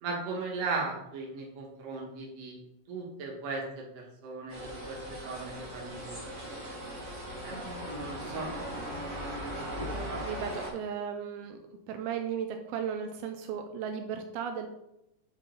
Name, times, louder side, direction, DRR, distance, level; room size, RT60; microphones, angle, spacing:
voice 1, 0.0-2.6 2.9-6.3 7.4-7.6 7.8-8.5 9.7-10.2, right 3 dB, 55° right, -2 dB, 2.4 m, -37 dB
sound 1, 4.5-10.7, equal, 30° right, 1.4 m, -38 dB
voice 2, 9.9-11.6 11.9-14.7, right 7 dB, 85° right, 5 dB, 2.5 m, -35 dB
8.9 x 3.8 x 3.9 m, 0.84 s
omnidirectional pair, 4.3 m